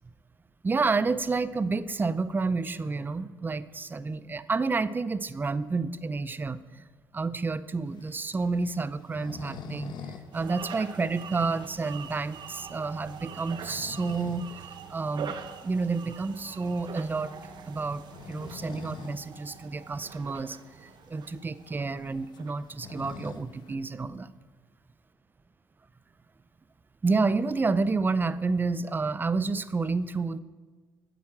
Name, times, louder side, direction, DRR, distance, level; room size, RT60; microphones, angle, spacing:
voice 1, 0.6-6.9 7.1-9.9 10.3-14.5 14.9-15.4 15.6-17.3 17.7-18.0 18.3-24.3 27.0-30.4, right 4 dB, 25° right, 15 dB, 0.6 m, -29 dB
sound 1, 7.9-10.3 10.6-10.7 11.1-11.2 11.7-11.8 13.3-14.5 14.9-15.0 16.6-16.8 18.0-19.3 19.6-19.7 20.0-20.1 20.8-20.9 21.1-23.7, left 6 dB, 65° left, 1.2 m, -44 dB
sound 2, 10.3-22.7, right 7 dB, 65° right, 1.0 m, -44 dB
9.2 x 9.0 x 7.7 m, 1.4 s
supercardioid pair, 80°, 8 cm